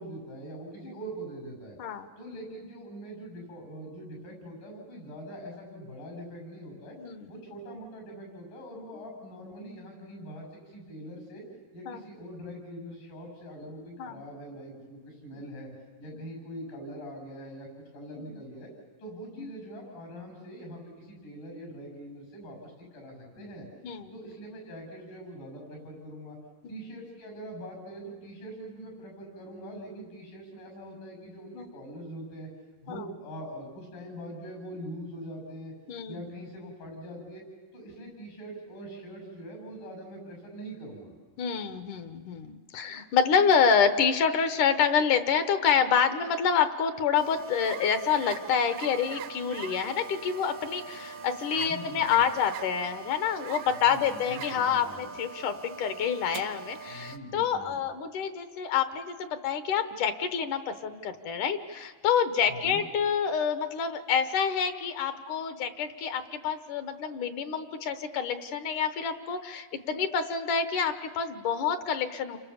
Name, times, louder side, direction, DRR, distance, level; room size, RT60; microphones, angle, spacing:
voice 1, 0.0-1.8 2.2-7.0 7.3-11.4 11.7-15.7 16.0-17.7 17.9-18.7 19.0-23.7 24.1-26.4 26.7-32.5 32.8-35.7 36.0-37.4 37.7-41.1 51.6-52.2 53.7-55.0 56.9-57.8 62.5-62.8, right 1 dB, 90° left, 2 dB, 9.8 m, -43 dB
voice 2, 35.9-36.2 41.4-72.4, left 7 dB, 70° left, 9 dB, 2.5 m, -27 dB
sound 1, 47.1-57.2, right 6 dB, 85° right, 2.9 m, -42 dB
30.0 x 26.0 x 7.2 m, 1.4 s
omnidirectional pair, 3.8 m